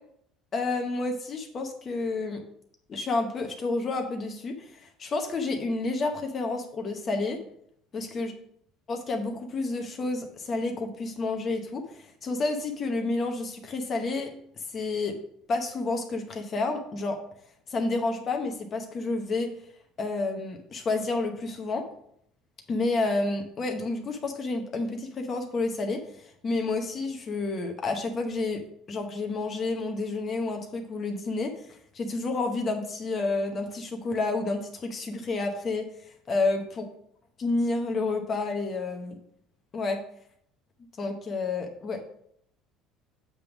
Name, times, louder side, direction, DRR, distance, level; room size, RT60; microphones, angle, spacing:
voice 1, 0.5-2.4 2.9-7.4 7.9-8.3 8.9-14.3 14.7-15.2 15.5-17.2 17.7-19.5 20.0-21.8 22.7-26.0 26.4-28.6 28.9-31.5 31.9-35.9 36.3-36.8 37.4-39.2 39.7-40.0 41.0-42.0, left 3 dB, 30° left, 4 dB, 0.9 m, -30 dB
7.5 x 3.5 x 6.0 m, 0.69 s
cardioid pair, 140°, 0 cm